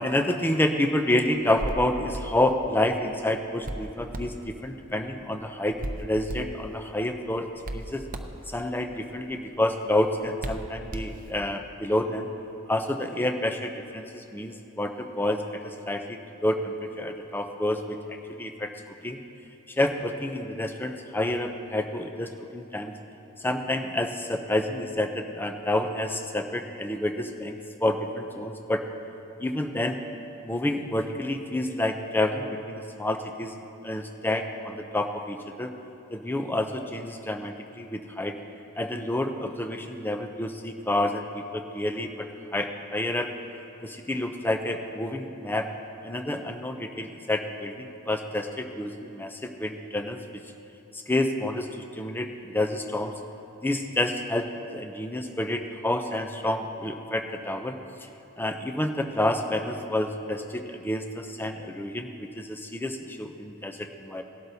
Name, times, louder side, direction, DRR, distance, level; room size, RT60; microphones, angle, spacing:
voice 1, 0.0-8.0 8.5-12.3 12.7-18.7 19.0-19.2 19.7-22.9 23.4-28.9 29.4-30.0 30.4-33.5 33.8-35.7 36.1-38.4 38.8-43.4 43.8-45.7 46.0-50.4 50.9-53.2 53.6-57.8 58.4-64.2, left 1 dB, 10° left, 5 dB, 0.5 m, -29 dB
Hands, 1.3-11.6, right 1 dB, 40° right, 0.7 m, -39 dB
19.0 x 12.0 x 2.7 m, 2.9 s
head